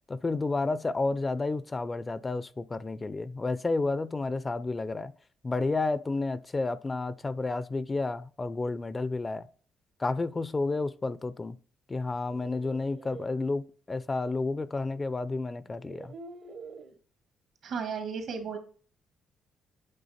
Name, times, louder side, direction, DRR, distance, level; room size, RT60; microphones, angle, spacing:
voice 1, 0.1-5.1 5.4-9.5 10.0-11.6 11.9-16.1, left 3 dB, 25° left, 0.4 m, -31 dB
sound 1, 12.1-13.3 14.8-14.9 15.6-17.0, right 4 dB, 55° right, 0.9 m, -47 dB
voice 2, 17.6-18.6, right 6 dB, 75° right, 1.8 m, -34 dB
8.6 x 3.5 x 4.2 m
cardioid pair, 90°, 0 cm